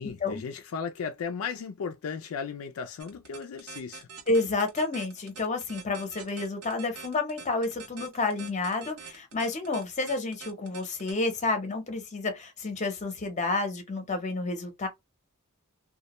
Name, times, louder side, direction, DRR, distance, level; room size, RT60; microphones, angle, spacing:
voice 1, 0.0-4.1, left 6 dB, 70° left, 0.4 m, -36 dB
sound 1, 3.0-11.1, right 6 dB, 80° right, 0.8 m, -44 dB
voice 2, 4.3-14.9, left 3 dB, 35° left, 0.7 m, -30 dB
2.2 x 2.1 x 2.9 m
head